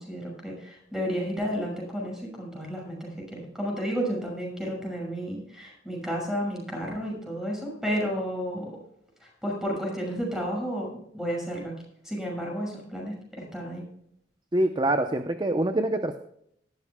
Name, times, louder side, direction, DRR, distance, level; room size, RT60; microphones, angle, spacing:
voice 1, 0.0-8.7 9.2-10.9 11.1-11.7 12.0-13.8, equal, 5° right, -1 dB, 6.0 m, -32 dB
voice 2, 14.5-16.2, right 1 dB, 25° right, 7 dB, 0.7 m, -25 dB
18.0 x 13.0 x 2.2 m, 0.72 s
head